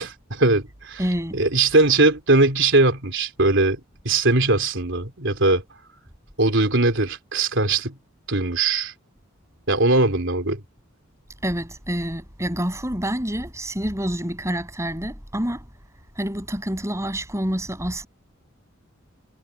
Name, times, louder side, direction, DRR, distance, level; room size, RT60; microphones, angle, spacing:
voice 1, 0.0-1.0 1.3-5.6 6.4-8.0 8.3-8.9 9.7-10.6, right 2 dB, 65° right, 3.8 m, -20 dB
voice 2, 1.0-1.4 11.4-15.6 16.2-18.1, equal, 15° right, 7.8 m, -27 dB
head